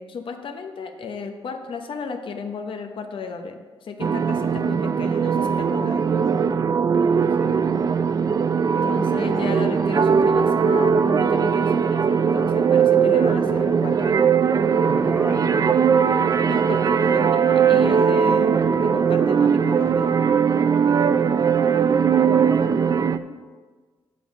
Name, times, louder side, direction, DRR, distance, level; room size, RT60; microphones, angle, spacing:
voice 1, 0.0-6.1 8.8-14.2 14.6-15.2 16.4-18.5 18.8-20.1, left 5 dB, 55° left, 5 dB, 0.9 m, -34 dB
sound 1, 4.0-23.2, right 6 dB, 35° right, 0.3 m, -19 dB
voice 2, 7.4-8.0 14.8-15.9 20.7-20.9 22.1-22.9, right 2 dB, 15° right, 5 dB, 0.7 m, -33 dB
7.6 x 7.1 x 5.1 m, 1.4 s
wide cardioid pair, 135°, 10 cm